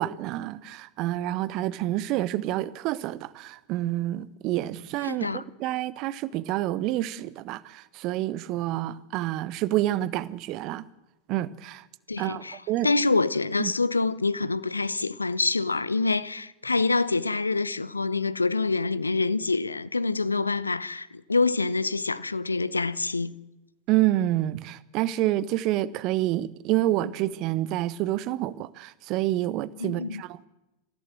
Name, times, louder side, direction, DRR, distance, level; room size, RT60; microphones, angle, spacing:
voice 1, 0.0-10.8 11.3-11.8 12.2-12.9 13.6-13.7 23.9-30.5, right 15 dB, 40° right, 1.0 m, -28 dB
voice 2, 5.0-5.4 12.1-23.4 29.8-30.2, left 3 dB, 80° left, 0.8 m, -26 dB
26.0 x 15.5 x 7.7 m
figure-of-eight pair, 90°, 0 cm